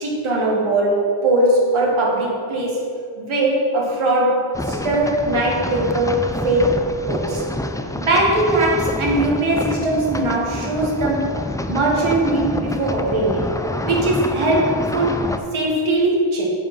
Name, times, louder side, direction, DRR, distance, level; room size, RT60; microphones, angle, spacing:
voice 1, 0.0-2.8 3.2-6.7 7.1-7.4 7.9-11.4 11.7-13.5 13.8-16.5, right 1 dB, 75° right, -3 dB, 1.9 m, -20 dB
sound 1, 4.5-15.4, left 1 dB, 5° left, 0.4 m, -27 dB
8.1 x 4.8 x 5.5 m, 2.4 s
cardioid pair, 70°, 49 cm